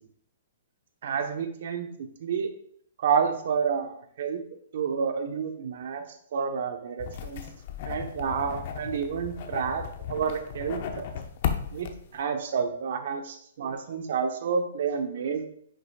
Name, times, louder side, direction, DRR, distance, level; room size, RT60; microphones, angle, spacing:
voice 1, 1.0-2.5 3.0-4.4 4.7-6.0 6.3-7.4 7.8-9.8 10.1-10.8 11.7-15.4, right 6 dB, 50° right, 6 dB, 1.0 m, -29 dB
sound 1, 7.0-12.2, left 8 dB, 40° left, 0.7 m, -35 dB
9.7 x 6.5 x 2.4 m, 0.65 s
hypercardioid pair, 170°, 0 cm